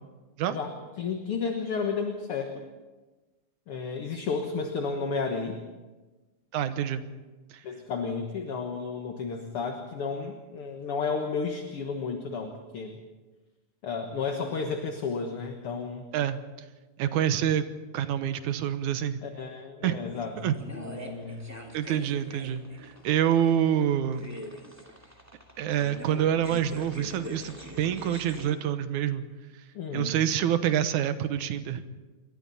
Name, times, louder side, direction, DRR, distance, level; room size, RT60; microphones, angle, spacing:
voice 1, 1.0-2.6 3.7-5.6 7.6-13.0 13.8-16.0 19.2-21.5 29.7-30.2, left 5 dB, 55° left, 4 dB, 2.1 m, -32 dB
voice 2, 6.5-7.0 7.5-7.6 16.1-16.4 17.0-17.6 17.9-19.2 19.8-20.0 20.4-20.5 21.7-24.3 25.6-29.2 29.9-31.8, right 10 dB, 80° right, 11 dB, 2.4 m, -27 dB
sound 1, 20.1-28.5, equal, 5° right, 2.0 m, -44 dB
27.5 x 23.0 x 4.2 m, 1.2 s
omnidirectional pair, 3.5 m